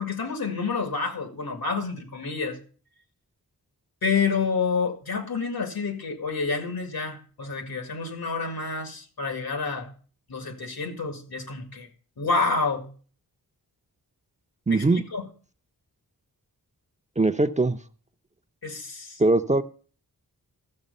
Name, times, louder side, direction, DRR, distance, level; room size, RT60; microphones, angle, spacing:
voice 1, 0.0-2.6 4.0-9.9 10.3-11.9 12.2-12.9 14.7-15.2 18.6-19.2, left 4 dB, 75° left, 2.1 m, -28 dB
voice 2, 14.7-15.0 17.2-17.8 19.2-19.6, right 2 dB, 20° right, 0.6 m, -21 dB
14.0 x 6.6 x 5.4 m
cardioid pair, 65°, 37 cm